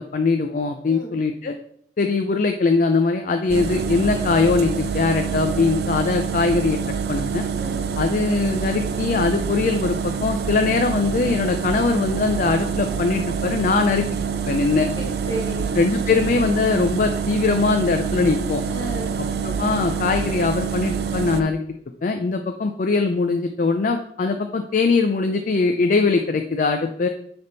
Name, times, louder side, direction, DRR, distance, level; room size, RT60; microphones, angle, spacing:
voice 1, 0.0-1.5 2.0-6.8 7.1-7.4 8.0-14.0 14.5-14.9 15.8-18.6 19.4-21.6 22.0-27.1, left 4 dB, 45° left, 6 dB, 0.4 m, -21 dB
sound 1, 3.5-21.4, right 6 dB, 60° right, 0.5 m, -26 dB
voice 2, 14.9-15.7 18.7-19.1, right 1 dB, 20° left, -4 dB, 2.6 m, -32 dB
9.5 x 3.5 x 4.0 m, 0.69 s
head